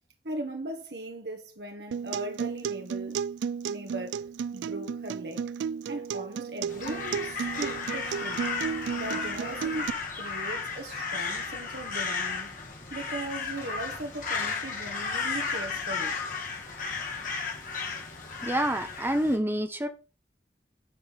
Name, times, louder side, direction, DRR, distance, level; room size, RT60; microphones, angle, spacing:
voice 1, 0.2-3.2 3.7-4.2 4.5-5.5 5.9-8.4 8.9-12.5 12.9-16.2, right 1 dB, 65° right, 1.6 m, -39 dB
Acoustic guitar, 1.9-9.9, right 7 dB, 80° right, 0.3 m, -33 dB
Crow, 6.7-19.4, left 4 dB, 45° left, 2.3 m, -34 dB
voice 2, 18.4-19.9, right 1 dB, 15° right, 1.0 m, -27 dB
9.9 x 5.5 x 4.1 m
head